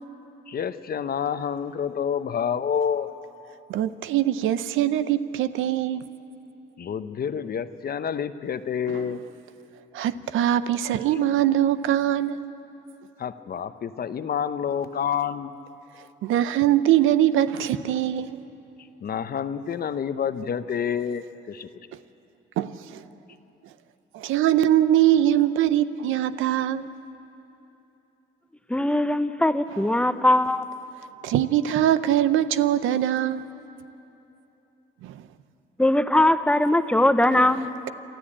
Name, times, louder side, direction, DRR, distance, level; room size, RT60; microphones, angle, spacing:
voice 1, 0.5-3.1 6.8-9.2 13.2-15.5 19.0-21.7, left 7 dB, 50° left, 11 dB, 0.9 m, -28 dB
voice 2, 3.7-6.0 8.9-9.2 9.9-12.4 16.2-18.4 22.6-23.0 24.1-26.9 31.2-33.4 35.0-35.1, right 12 dB, 85° right, 13 dB, 0.7 m, -22 dB
voice 3, 28.7-30.6 35.8-37.8, left 1 dB, 5° left, 11 dB, 0.8 m, -20 dB
27.5 x 13.0 x 8.7 m, 3.0 s
cardioid pair, 90°, 20 cm